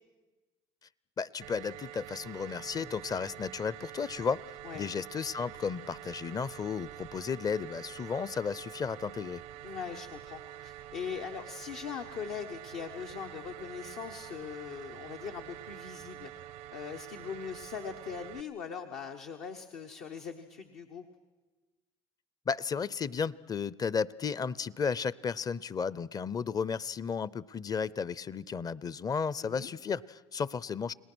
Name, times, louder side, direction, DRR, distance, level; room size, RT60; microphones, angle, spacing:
voice 1, 1.2-4.4 4.7-9.4 22.5-30.9, left 6 dB, 30° left, 21 dB, 0.6 m, -33 dB
sound 1, 1.4-18.4, right 12 dB, 80° right, 0.6 m, -47 dB
voice 2, 9.6-16.3 16.7-21.0 29.4-29.7, left 6 dB, 75° left, 3 dB, 1.3 m, -41 dB
30.0 x 19.0 x 6.2 m, 1.2 s
supercardioid pair, 80°, 12 cm